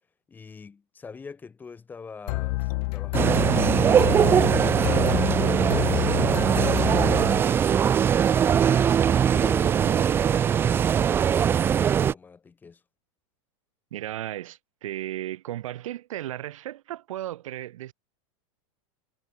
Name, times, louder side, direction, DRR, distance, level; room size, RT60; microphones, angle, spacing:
voice 1, 0.3-4.8 5.3-8.9 9.3-10.1 10.5-12.8, left 5 dB, 10° left, 3.9 m, -44 dB
sound 1, 2.3-8.0, left 29 dB, 40° left, 0.8 m, -28 dB
sound 2, 3.1-12.1, right 8 dB, 15° right, 0.6 m, -21 dB
voice 2, 13.9-17.9, right 13 dB, 75° right, 4.1 m, -35 dB
supercardioid pair, 170°, 17 cm